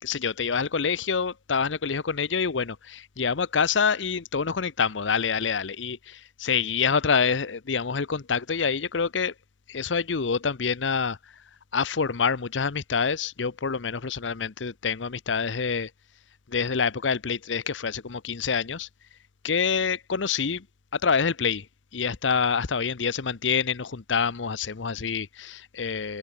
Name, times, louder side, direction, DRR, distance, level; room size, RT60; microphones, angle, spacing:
voice 1, 0.0-9.3 9.7-11.2 11.7-15.9 16.5-18.9 19.4-20.6 20.9-21.7 21.9-26.2, left 6 dB, 85° left, 0.8 m, -26 dB
head